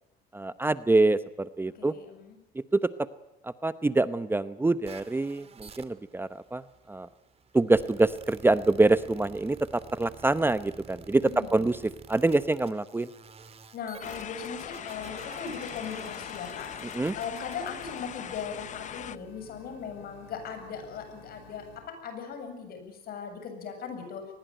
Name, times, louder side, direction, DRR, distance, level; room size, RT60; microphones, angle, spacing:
voice 1, 0.3-1.9 2.5-2.9 3.4-6.6 6.9-7.1 7.5-11.8 12.1-13.1 16.9-17.1, right 2 dB, 15° right, 14 dB, 0.8 m, -25 dB
voice 2, 1.7-2.4 11.2-11.7 13.7-24.3, left 6 dB, 65° left, 7 dB, 7.8 m, -39 dB
sound 1, 4.8-18.4, right 5 dB, 35° right, 2.5 m, -50 dB
sound 2, 14.0-19.2, left 9 dB, 45° left, 0.9 m, -40 dB
sound 3, 15.0-21.8, left 7 dB, 85° left, 3.6 m, -53 dB
24.0 x 20.5 x 9.1 m, 0.91 s
cardioid pair, 110°, 17 cm